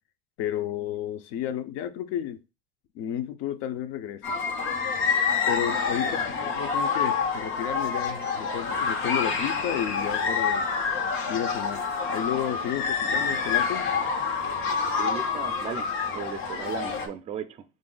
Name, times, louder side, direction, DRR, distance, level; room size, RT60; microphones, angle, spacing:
voice 1, 0.4-2.4 2.9-4.4 5.5-10.6 11.3-11.8 12.1-13.9, left 10 dB, 55° left, 0.6 m, -32 dB
sound 1, 4.2-17.1, left 5 dB, 85° left, 1.2 m, -27 dB
voice 2, 6.0-6.5 12.8-12.9 15.0-17.6, right 7 dB, 25° right, 0.4 m, -37 dB
4.6 x 2.6 x 3.8 m
supercardioid pair, 140°, 30 cm